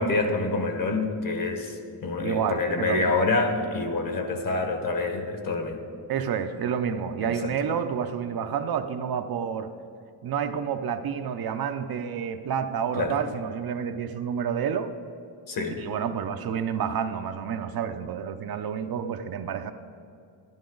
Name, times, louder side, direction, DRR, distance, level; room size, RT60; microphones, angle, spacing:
voice 1, 0.0-5.8 7.2-7.5 13.0-13.2 15.5-15.8, left 3 dB, 45° left, 5 dB, 1.4 m, -27 dB
voice 2, 2.2-3.2 6.1-9.7 10.2-14.9 15.8-19.7, right 7 dB, 50° right, 7 dB, 0.6 m, -29 dB
12.0 x 10.5 x 3.9 m, 2.4 s
cardioid pair, 125°, 48 cm